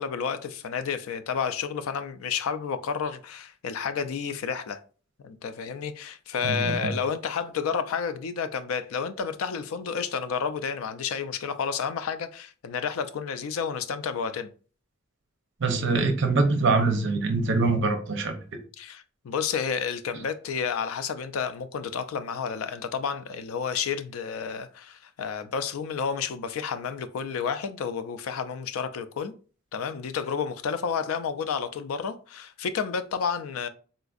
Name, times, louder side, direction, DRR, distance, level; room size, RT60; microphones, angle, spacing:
voice 1, 0.0-4.8 5.2-14.5 18.8-29.3 29.7-33.7, left 6 dB, 85° left, 0.4 m, -31 dB
voice 2, 6.4-6.9 15.6-18.4, right 3 dB, 60° right, 0.6 m, -24 dB
3.9 x 2.5 x 2.4 m
head